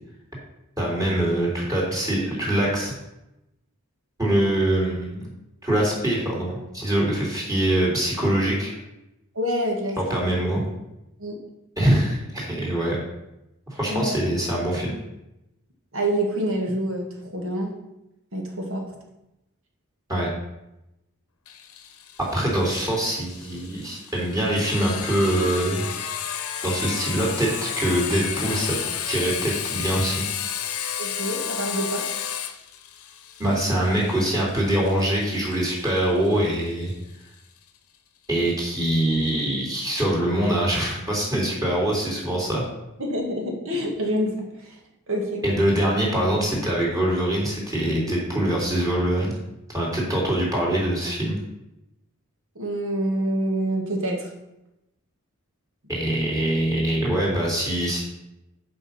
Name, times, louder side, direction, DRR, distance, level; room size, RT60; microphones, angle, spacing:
voice 1, 0.8-2.9 4.2-5.2 5.6-8.8 10.1-10.6 11.8-13.0 13.7-14.9 20.1-20.3 22.2-25.8 26.6-28.8 29.0-30.2 33.4-36.9 38.3-42.6 45.4-49.4 49.7-51.4 55.9-58.1, right 1 dB, 15° right, -4 dB, 3.3 m, -23 dB
voice 2, 9.4-10.3 11.2-11.4 13.9-14.2 15.9-17.7 18.3-18.8 31.0-32.0 43.0-44.8 45.1-45.4 52.6-54.3, right 1 dB, 65° right, 1 dB, 2.1 m, -27 dB
Sawing, 21.5-36.9, left 8 dB, 75° left, 0.9 m, -32 dB
9.6 x 5.4 x 5.7 m, 0.91 s
head